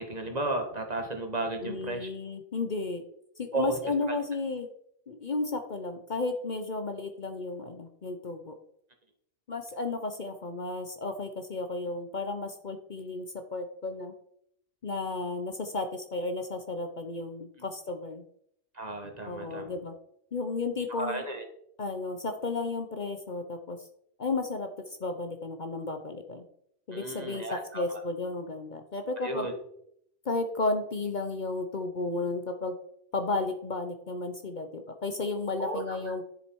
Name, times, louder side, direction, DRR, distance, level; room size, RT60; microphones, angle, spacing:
voice 1, 0.0-2.1 3.5-3.7 18.7-19.7 20.9-21.4 26.9-28.0 29.2-29.5 35.6-36.0, right 2 dB, 35° right, 5 dB, 1.5 m, -33 dB
voice 2, 1.6-3.0 3.4-4.7 5.1-8.5 9.5-14.1 14.8-18.2 19.2-19.9 20.3-21.2 21.8-23.8 24.2-24.7 25.0-26.4 26.9-29.5 30.2-32.7 33.1-36.2, left 3 dB, 45° left, 6 dB, 0.9 m, -33 dB
10.5 x 7.0 x 4.6 m, 0.71 s
omnidirectional pair, 1.2 m